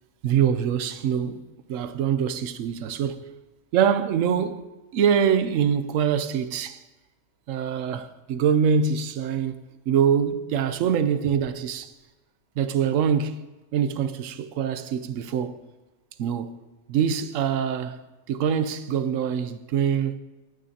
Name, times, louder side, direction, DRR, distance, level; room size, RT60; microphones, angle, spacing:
voice 1, 0.2-3.2 3.7-4.6 4.9-6.8 7.5-9.6 9.9-11.9 12.6-13.4 13.7-15.6 16.2-16.6 16.9-20.2, right 7 dB, 85° right, 1.0 m, -24 dB
15.0 x 9.0 x 2.8 m
omnidirectional pair, 1.3 m